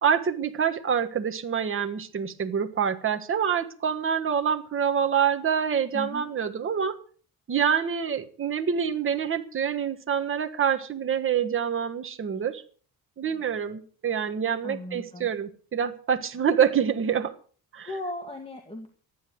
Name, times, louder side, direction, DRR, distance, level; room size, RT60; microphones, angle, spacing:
voice 1, 0.0-7.0 7.5-12.6 13.2-17.3 17.7-17.9, right 7 dB, 35° right, 7 dB, 1.4 m, -26 dB
voice 2, 5.9-6.3 14.6-15.3 17.9-18.9, left 2 dB, 15° left, 3 dB, 1.9 m, -36 dB
14.0 x 10.5 x 6.5 m, 0.43 s
cardioid pair, 140°, 38 cm